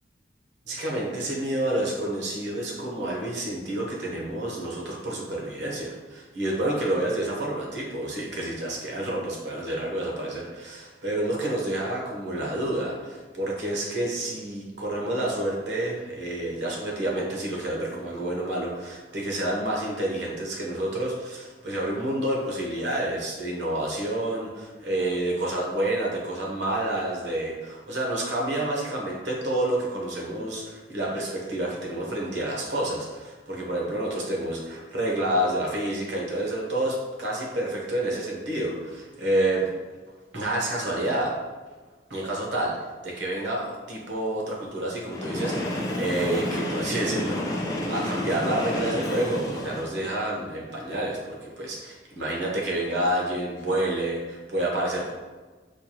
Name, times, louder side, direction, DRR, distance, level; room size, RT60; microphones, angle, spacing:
voice 1, 0.6-39.7 40.3-41.3 42.1-42.8 43.0-55.1, right 1 dB, 85° right, -2 dB, 0.9 m, -29 dB
Train, 45.0-50.1, left 1 dB, 20° left, 0.4 m, -30 dB
4.5 x 2.2 x 3.0 m, 1.3 s
head